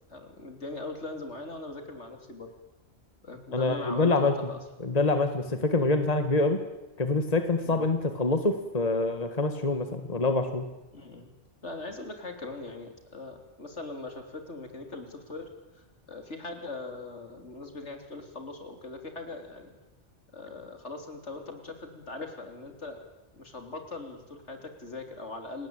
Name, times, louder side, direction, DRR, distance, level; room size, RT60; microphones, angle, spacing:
voice 1, 0.1-2.5 3.2-4.6 7.6-7.9 10.9-11.3 11.6-19.7 20.3-23.0 23.3-25.7, left 3 dB, 80° left, 6 dB, 3.9 m, -41 dB
voice 2, 3.5-4.3 4.8-6.6 7.0-10.7, left 3 dB, 35° left, 8 dB, 1.9 m, -26 dB
29.0 x 19.5 x 8.9 m, 1.0 s
omnidirectional pair, 1.2 m